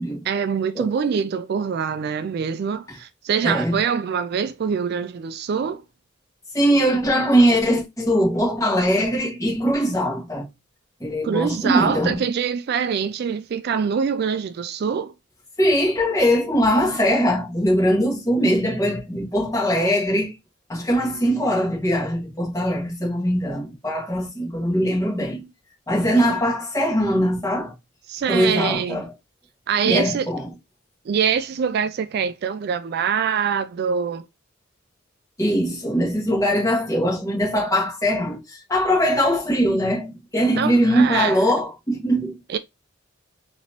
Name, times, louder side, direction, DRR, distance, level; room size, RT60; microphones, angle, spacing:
voice 1, 0.3-5.8 11.2-15.1 28.1-29.0 29.7-30.3 31.1-34.2 40.6-41.4 42.5-42.6, right 7 dB, 55° right, 0.3 m, -24 dB
voice 2, 3.4-3.8 6.5-10.5 11.0-12.2 15.6-20.3 20.7-25.5 25.9-27.7 28.3-29.1 29.8-30.5 35.4-42.4, equal, 15° left, 1.6 m, -21 dB
4.2 x 2.9 x 2.9 m
head